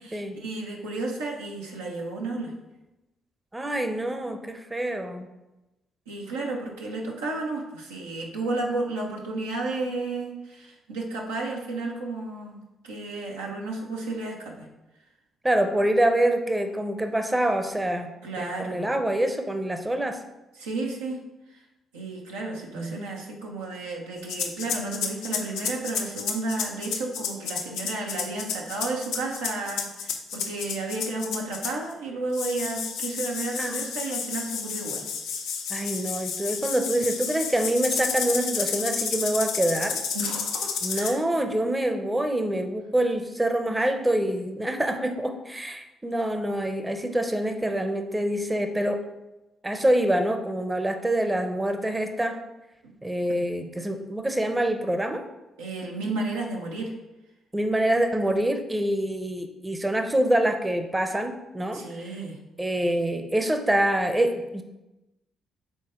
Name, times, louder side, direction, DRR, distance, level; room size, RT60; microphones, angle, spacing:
voice 1, 0.0-2.5 6.1-12.6 12.8-14.7 18.2-18.9 20.5-21.2 21.9-35.1 40.1-41.2 52.8-52.9 55.6-56.9 61.7-62.4, right 2 dB, 90° right, -2 dB, 0.9 m, -32 dB
voice 2, 3.5-5.3 15.4-18.1 18.4-20.2 22.8-23.0 33.6-33.9 35.7-40.0 40.8-49.0 49.6-52.4 53.0-55.2 57.5-61.8 62.6-64.6, right 1 dB, 15° right, 7 dB, 0.7 m, -26 dB
sound 1, 24.2-31.9 32.3-41.1, left 6 dB, 75° left, 0.6 m, -31 dB
6.3 x 3.9 x 3.8 m, 0.99 s
hypercardioid pair, 45°, 0 cm